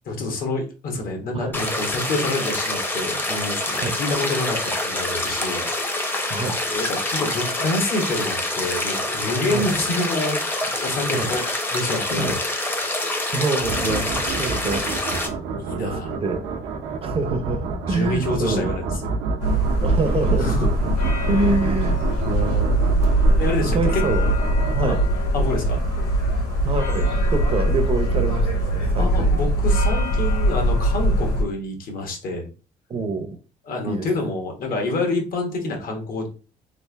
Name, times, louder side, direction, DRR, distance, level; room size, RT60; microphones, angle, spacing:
voice 1, 0.0-5.7 6.1-6.4 6.7-11.4 11.7-12.4 14.4-14.7 15.6-16.1 17.8-19.1 20.4-20.7 23.4-24.0 24.8-25.1 25.3-25.8 29.0-32.5 33.7-36.3, left 2 dB, 60° left, 1.2 m, -27 dB
sound 1, 1.5-15.3, left 1 dB, 10° left, 0.7 m, -26 dB
voice 2, 13.3-14.1 14.4-14.9 15.8-16.5 17.0-18.7 19.8-20.7 21.3-22.9 23.7-24.2 24.7-25.0 26.6-29.3 32.9-33.4 33.9-34.1, right 3 dB, 35° right, 0.6 m, -26 dB
sound 2, 13.6-25.3, right 4 dB, 90° right, 0.7 m, -29 dB
sound 3, 19.4-31.4, right 1 dB, 75° left, 1.8 m, -21 dB
3.3 x 2.5 x 3.3 m
cardioid pair, 110°, 17 cm